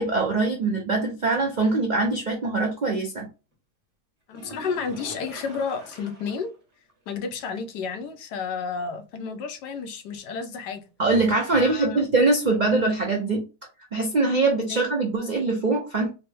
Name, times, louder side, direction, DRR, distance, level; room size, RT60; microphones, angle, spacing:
voice 1, 0.0-3.3 11.0-13.4 13.9-16.1, right 3 dB, 80° right, 0.4 m, -23 dB
voice 2, 4.3-6.5 7.1-10.8 11.5-12.0 14.7-14.8, left 5 dB, 85° left, 1.3 m, -31 dB
sound 1, 4.3-6.6 6.9-7.0 7.4-7.5 11.3-11.4, equal, 30° right, 0.7 m, -43 dB
4.2 x 2.0 x 3.3 m
omnidirectional pair, 1.8 m